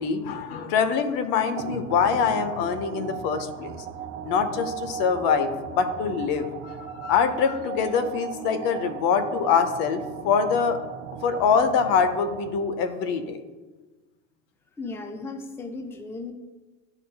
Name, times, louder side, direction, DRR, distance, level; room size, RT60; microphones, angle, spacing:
voice 1, 0.0-3.9 4.2-10.8 11.2-13.4, left 6 dB, 70° left, 10 dB, 0.8 m, -24 dB
sound 1, 1.6-12.9, right 8 dB, 75° right, 0.7 m, -37 dB
voice 2, 14.8-16.3, left 3 dB, 5° left, 6 dB, 0.4 m, -36 dB
11.5 x 3.9 x 2.3 m, 1.3 s
supercardioid pair, 120°, 35 cm